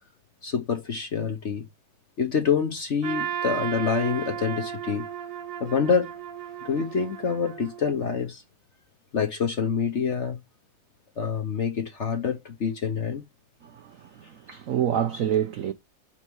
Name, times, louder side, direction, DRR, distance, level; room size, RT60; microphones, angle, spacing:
voice 1, 0.4-1.6 2.2-5.1 5.6-6.1 6.6-8.4 9.1-10.4 11.2-13.2, left 6 dB, 50° left, 1.0 m, -26 dB
Trumpet, 3.0-8.1, right 9 dB, 50° right, 1.3 m, -34 dB
voice 2, 13.6-15.7, right 10 dB, 75° right, 0.7 m, -27 dB
5.7 x 4.4 x 4.6 m
omnidirectional pair, 2.1 m